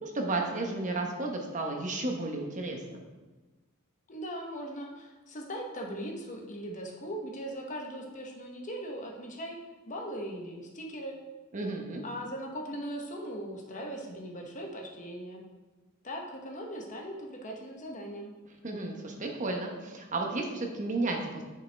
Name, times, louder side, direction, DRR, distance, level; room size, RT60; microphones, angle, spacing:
voice 1, 0.0-3.0 11.5-12.0 18.6-21.4, right 2 dB, 35° right, 2 dB, 1.0 m, -33 dB
voice 2, 4.1-9.6 9.9-11.2 12.0-15.4 16.0-18.3, equal, 35° left, 0 dB, 1.0 m, -39 dB
9.6 x 5.6 x 3.4 m, 1.2 s
head